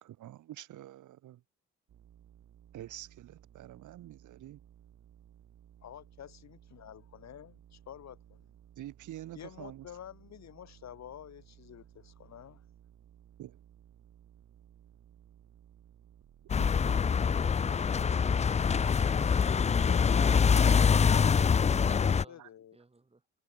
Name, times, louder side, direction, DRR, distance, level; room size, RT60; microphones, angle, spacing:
voice 1, 0.0-1.4 2.7-4.6 8.8-9.9 13.4-13.6 16.6-17.1 19.0-19.3 21.7-21.8 22.4-22.5, right 13 dB, 80° right, 3.7 m, -47 dB
sound 1, 1.9-20.3, right 10 dB, 60° right, 2.5 m, -59 dB
voice 2, 5.8-8.5 9.3-12.6 19.8-20.1 21.8-22.8, left 10 dB, 65° left, 2.8 m, -49 dB
sound 2, 16.5-22.2, left 6 dB, 25° left, 0.4 m, -25 dB
voice 3, 20.2-21.3 21.9-22.4 22.7-23.2, right 3 dB, 20° right, 5.1 m, -53 dB
cardioid pair, 90°, 30 cm